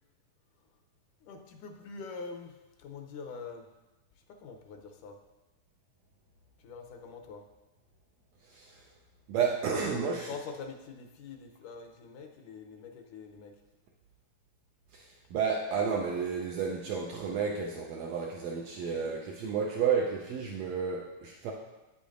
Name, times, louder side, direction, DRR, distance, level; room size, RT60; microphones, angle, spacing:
voice 1, 1.2-3.7 4.2-5.2 6.6-7.5 9.4-9.6 10.0-13.6 18.8-19.1, left 5 dB, 80° left, 3 dB, 2.1 m, -45 dB
voice 2, 8.4-8.9 9.3-10.3 14.9-21.5, right 6 dB, 85° right, -1 dB, 1.6 m, -31 dB
9.2 x 8.5 x 2.5 m, 1.1 s
omnidirectional pair, 3.7 m